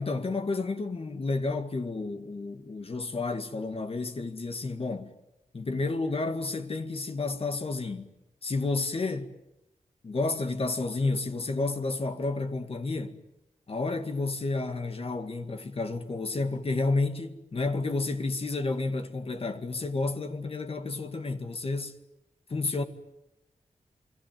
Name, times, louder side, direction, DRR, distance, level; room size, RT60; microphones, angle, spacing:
voice 1, 0.0-5.1 5.5-8.1 8.4-9.3 10.0-13.2 13.7-22.0 22.5-22.8, left 3 dB, 45° left, 2.1 m, -31 dB
28.0 x 22.0 x 9.4 m
wide cardioid pair, 120°, 13 cm